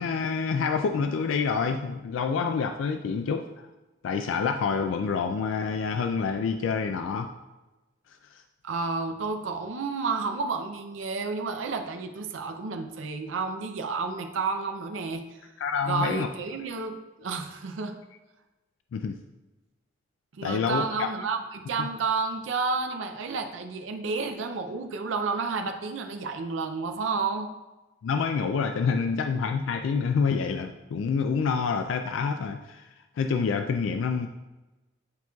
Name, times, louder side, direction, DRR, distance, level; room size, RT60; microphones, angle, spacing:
voice 1, 0.0-3.7 4.0-7.3 8.3-8.4 15.6-16.3 18.9-19.2 20.4-21.1 21.8-21.9 28.0-34.3, left 5 dB, 90° left, 6 dB, 0.3 m, -27 dB
voice 2, 8.6-15.4 15.9-18.0 20.4-27.5, right 4 dB, 85° right, 5 dB, 0.5 m, -31 dB
9.4 x 4.5 x 2.3 m, 1.1 s
head